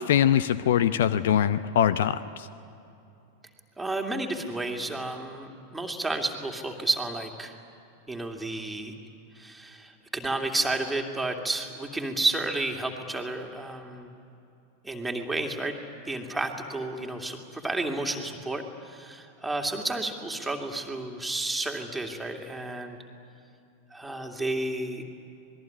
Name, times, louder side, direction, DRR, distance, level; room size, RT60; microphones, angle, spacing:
voice 1, 0.0-2.5, left 10 dB, 60° left, 15 dB, 0.7 m, -23 dB
voice 2, 3.8-7.6 8.1-8.9 9.3-14.1 14.8-15.8 16.0-23.0 23.9-25.1, right 2 dB, 5° right, 2 dB, 2.6 m, -31 dB
26.5 x 21.0 x 9.8 m, 2.7 s
figure-of-eight pair, 90°, 0 cm